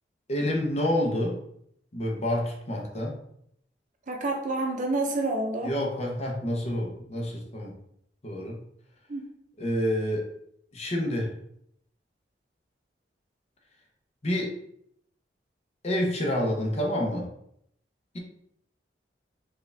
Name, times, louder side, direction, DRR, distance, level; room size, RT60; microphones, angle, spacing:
voice 1, 0.3-1.4 1.9-3.2 5.6-7.7 8.2-8.6 9.6-10.2 10.7-11.3 14.2-14.6 15.8-17.3, left 1 dB, 40° left, 0 dB, 0.8 m, -28 dB
voice 2, 4.1-5.7 9.1-9.3, right 2 dB, 45° right, 2 dB, 0.7 m, -28 dB
4.7 x 2.5 x 3.3 m, 0.71 s
head